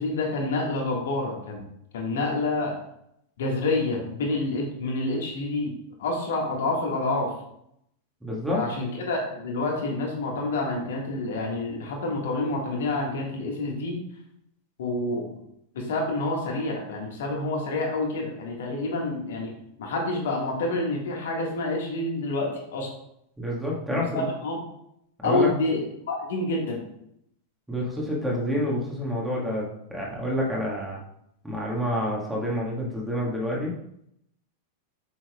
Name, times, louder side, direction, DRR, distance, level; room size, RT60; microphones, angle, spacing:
voice 1, 0.0-1.6 1.9-2.7 3.4-5.7 6.0-7.3 8.5-14.0 14.8-15.3 15.7-19.5 19.8-22.9 23.9-24.6 25.2-26.8, left 2 dB, 60° left, 0 dB, 1.7 m, -28 dB
voice 2, 8.2-8.6 23.4-24.3 25.2-25.5 27.7-31.0 31.4-33.7, equal, 5° right, -4 dB, 1.7 m, -28 dB
7.2 x 6.4 x 2.3 m, 0.75 s
figure-of-eight pair, 90°, 0 cm